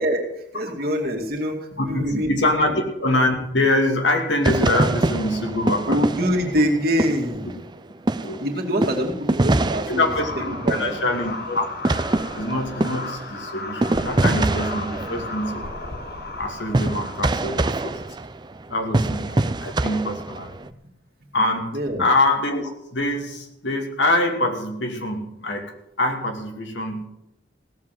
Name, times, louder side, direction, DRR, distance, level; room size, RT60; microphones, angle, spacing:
voice 1, 0.0-2.3 2.6-2.7 5.9-7.6 8.4-10.0 10.6-11.0 20.6-20.7 21.7-22.1, equal, 50° right, 0 dB, 2.4 m, -24 dB
voice 2, 1.8-2.7 3.0-6.0 8.2-8.4 9.9-11.6 12.3-15.6 16.4-18.0 18.7-20.5 21.3-25.7 26.0-27.1, left 1 dB, 80° left, 3 dB, 2.6 m, -24 dB
sound 1, 4.4-7.8 8.1-20.7, right 2 dB, 25° right, 0.5 m, -25 dB
sound 2, 10.0-18.1, left 3 dB, 55° left, 1.2 m, -35 dB
17.0 x 7.4 x 7.6 m, 0.81 s
head